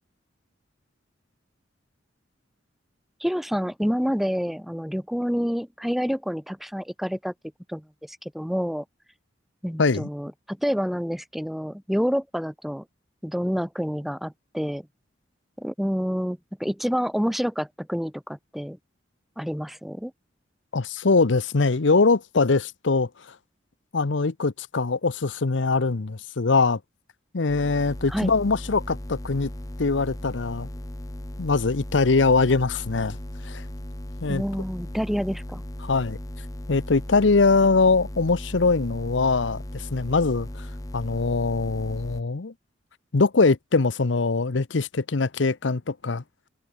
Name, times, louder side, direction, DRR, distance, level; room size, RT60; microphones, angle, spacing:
voice 1, 3.2-7.3 7.7-8.8 9.6-12.8 13.2-14.9 15.6-18.8 19.4-20.1 28.1-28.3 34.3-35.6, equal, ahead, 1.3 m, -28 dB
voice 2, 9.8-10.1 20.7-23.1 23.9-26.8 27.3-29.5 29.8-30.7 31.4-33.2 33.4-33.6 34.2-34.4 35.8-36.2 36.7-40.7 40.9-42.5 43.1-46.2, left 4 dB, 70° left, 0.8 m, -22 dB
sound 1, 27.5-42.2, left 1 dB, 20° left, 1.2 m, -37 dB
head